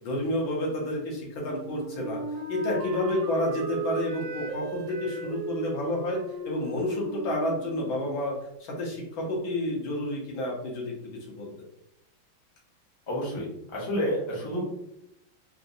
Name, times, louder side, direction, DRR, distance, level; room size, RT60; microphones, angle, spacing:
voice 1, 0.0-2.2 2.5-8.3 8.6-11.5, left 1 dB, 75° left, -2 dB, 1.7 m, -30 dB
Wind instrument woodwind instrument, 1.5-8.3, right 2 dB, 70° right, 1.3 m, -36 dB
voice 2, 13.1-14.6, equal, 20° left, -5 dB, 0.8 m, -30 dB
3.8 x 2.6 x 2.6 m, 0.79 s
omnidirectional pair, 2.2 m